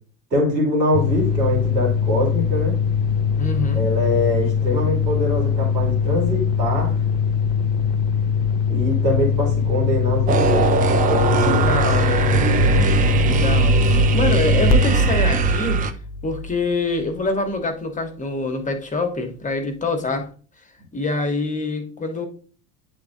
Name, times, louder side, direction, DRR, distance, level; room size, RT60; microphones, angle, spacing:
voice 1, 0.3-2.8 3.7-6.9 8.7-11.7 12.2-13.0, left 1 dB, 85° right, -2 dB, 2.4 m, -23 dB
sound 1, 0.9-17.3, left 6 dB, 40° left, 0.5 m, -22 dB
voice 2, 3.4-3.9 11.4-12.5 13.3-15.8 16.2-20.3 20.9-22.3, left 3 dB, 15° left, 4 dB, 1.1 m, -25 dB
sound 2, 10.3-15.9, right 5 dB, 20° right, 0.4 m, -19 dB
9.9 x 3.6 x 2.6 m, 0.40 s
figure-of-eight pair, 70°, 49 cm